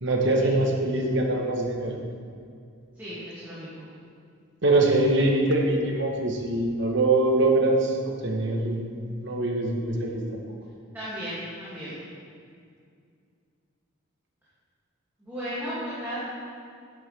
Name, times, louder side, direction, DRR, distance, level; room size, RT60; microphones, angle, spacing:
voice 1, 0.0-2.0 4.6-8.8 9.2-10.4, right 2 dB, 55° right, 1 dB, 1.2 m, -23 dB
voice 2, 3.0-3.8 10.9-11.9 15.2-16.2, equal, 10° right, -13 dB, 2.5 m, -35 dB
9.8 x 9.7 x 3.5 m, 2.3 s
head